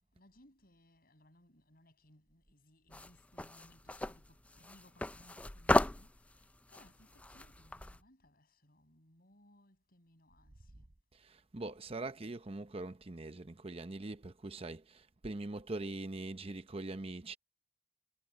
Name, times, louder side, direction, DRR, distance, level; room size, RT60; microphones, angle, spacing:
voice 1, 0.1-10.9, left 1 dB, 55° left, 7.8 m, -65 dB
sound 1, 2.9-8.0, left 1 dB, 10° left, 0.4 m, -35 dB
voice 2, 11.1-17.4, right 2 dB, 35° right, 0.8 m, -42 dB
head